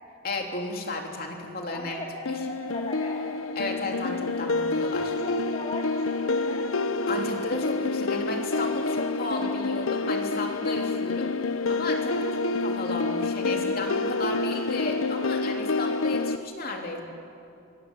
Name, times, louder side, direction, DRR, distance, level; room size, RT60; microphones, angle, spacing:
voice 1, 0.2-2.4 3.6-5.2 7.1-11.3 11.7-17.0, left 2 dB, 45° left, 1 dB, 3.5 m, -34 dB
voice 2, 1.7-3.2 5.2-6.7 12.0-12.3, left 1 dB, 30° left, -2 dB, 2.5 m, -38 dB
sound 1, 2.3-16.4, left 3 dB, 85° left, 0.8 m, -28 dB
25.5 x 25.0 x 8.4 m, 2.6 s
head